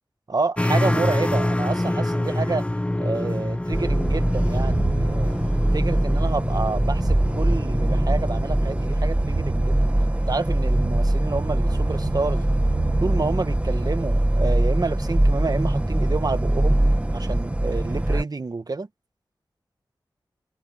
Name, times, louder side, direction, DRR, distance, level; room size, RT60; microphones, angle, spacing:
voice 1, 0.3-2.6 3.0-5.3 5.7-9.9 10.3-12.4 13.0-16.8 17.1-18.9, right 3 dB, 50° right, 1.4 m, -29 dB
sound 1, 0.6-8.9, left 1 dB, 15° left, 0.8 m, -26 dB
sound 2, 3.7-18.2, right 1 dB, 15° right, 1.4 m, -22 dB
sound 3, 4.1-13.6, right 4 dB, 80° right, 5.5 m, -35 dB
wide cardioid pair, 70°, 8 cm